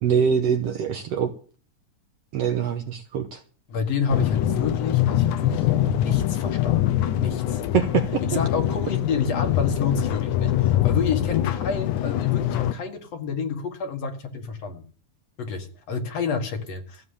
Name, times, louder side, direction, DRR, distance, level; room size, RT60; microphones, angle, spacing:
voice 1, 0.0-1.3 2.3-3.4 7.7-8.2, right 7 dB, 65° right, 7 dB, 1.7 m, -23 dB
voice 2, 3.7-7.6 8.2-14.8 15.4-17.1, left 5 dB, 55° left, 6 dB, 2.5 m, -29 dB
sound 1, 4.1-12.7, left 13 dB, 75° left, 2.2 m, -23 dB
15.0 x 7.3 x 8.6 m, 0.40 s
omnidirectional pair, 3.7 m